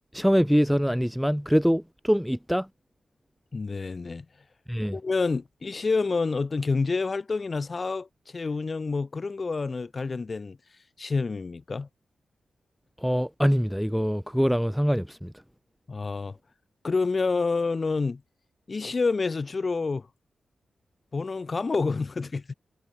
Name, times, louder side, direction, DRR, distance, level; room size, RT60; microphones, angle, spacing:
voice 1, 0.1-2.7 4.7-5.0 13.0-15.3, equal, ahead, 0.3 m, -24 dB
voice 2, 3.5-4.3 4.9-10.6 11.0-11.9 15.9-16.4 16.8-18.2 18.7-20.1 21.1-22.5, left 4 dB, 40° left, 0.8 m, -28 dB
cardioid pair, 70°, 0 cm